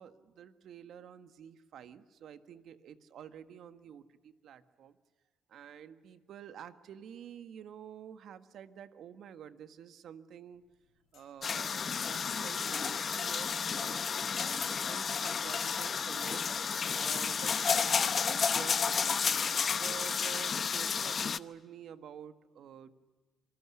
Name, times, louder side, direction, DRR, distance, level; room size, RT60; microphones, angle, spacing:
voice 1, 0.0-5.0 5.5-10.6 11.1-14.0 14.3-16.4 16.9-19.2 19.5-22.9, right 9 dB, 70° right, 10 dB, 1.6 m, -49 dB
metal clanking, 10.6-17.9, left 10 dB, 80° left, 4.9 m, -59 dB
sound 1, 11.4-21.4, left 6 dB, 45° left, 0.8 m, -31 dB
26.5 x 21.5 x 9.8 m, 1.3 s
cardioid pair, 90°, 0 cm